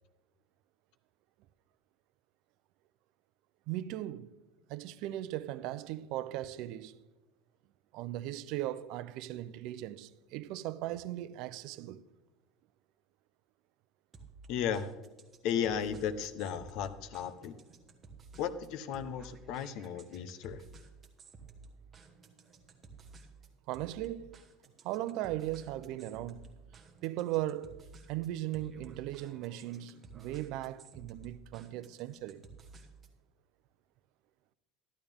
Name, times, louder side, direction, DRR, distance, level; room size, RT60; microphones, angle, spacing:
voice 1, 3.7-4.3 4.7-7.0 7.9-12.0 23.7-24.4 24.8-26.5 27.0-32.5, right 14 dB, 60° right, 0.5 m, -38 dB
sound 1, 14.1-33.2, right 4 dB, 20° right, 1.3 m, -54 dB
voice 2, 14.5-14.9 15.4-17.5 18.4-20.6, left 8 dB, 60° left, 0.8 m, -35 dB
12.5 x 12.0 x 3.5 m
cardioid pair, 145°, 0 cm